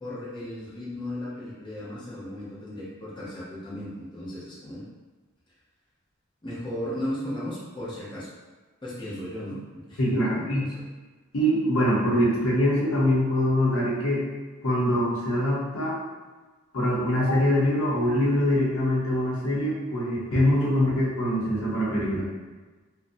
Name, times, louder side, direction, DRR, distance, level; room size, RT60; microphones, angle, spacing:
voice 1, 0.0-4.8 6.4-8.3 8.8-10.6, left 1 dB, 20° left, -8 dB, 0.6 m, -35 dB
voice 2, 10.0-10.6 11.3-14.2 14.6-16.0 16.7-22.2, equal, 85° left, -6 dB, 0.7 m, -23 dB
2.5 x 2.0 x 2.5 m, 1.3 s
head